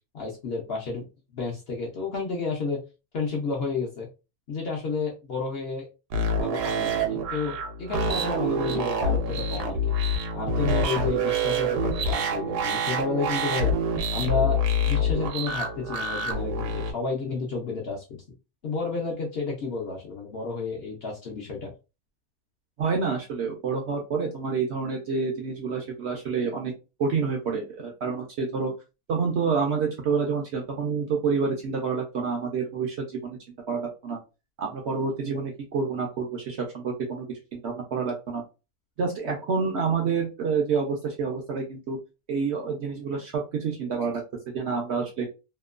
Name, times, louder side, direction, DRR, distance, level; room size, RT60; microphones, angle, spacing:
voice 1, 0.1-1.0 1.3-2.8 3.1-4.1 4.5-10.0 10.3-13.7 14.1-14.6 14.9-18.0 18.6-21.7, left 4 dB, 65° left, -1 dB, 0.6 m, -31 dB
sound 1, 6.1-16.9, equal, 85° right, 1.2 m, -26 dB
voice 2, 22.8-26.7 27.0-28.7 29.1-33.4 33.7-34.2 34.6-38.4 39.0-42.0 42.3-44.2 44.5-45.3, right 5 dB, 70° right, 1 dB, 0.6 m, -28 dB
2.9 x 2.1 x 2.3 m, 0.29 s
omnidirectional pair, 1.7 m